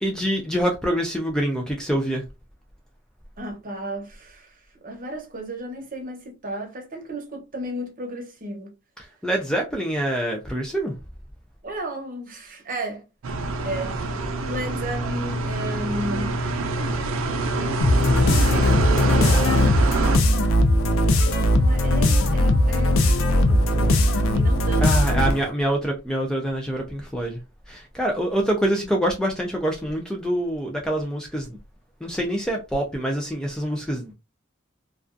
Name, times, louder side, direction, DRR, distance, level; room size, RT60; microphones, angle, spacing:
voice 1, 0.0-2.2 9.0-11.0 24.8-27.4 27.7-31.6 32.0-34.1, right 1 dB, 5° left, 0.3 m, -25 dB
voice 2, 3.4-4.5 4.8-8.7 11.6-13.0 13.6-13.9 14.4-16.4 18.2-19.7 21.0-25.3, right 1 dB, 45° right, 0.8 m, -34 dB
sound 1, 13.2-20.2, right 2 dB, 80° right, 0.5 m, -26 dB
sound 2, 17.8-25.5, left 1 dB, 80° left, 0.4 m, -19 dB
2.3 x 2.3 x 2.4 m
head